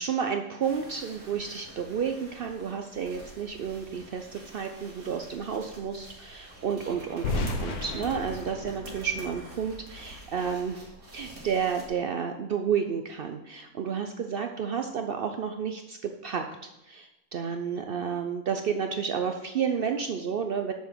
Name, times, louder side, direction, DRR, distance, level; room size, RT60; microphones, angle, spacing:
voice 1, 0.0-16.4 16.9-20.7, right 7 dB, 85° right, 6 dB, 0.5 m, -31 dB
sound 1, 0.6-11.9, right 1 dB, 60° right, 2.6 m, -47 dB
sound 2, 7.2-10.2, left 2 dB, 75° left, 1.5 m, -34 dB
7.0 x 6.6 x 6.6 m, 0.94 s
omnidirectional pair, 1.7 m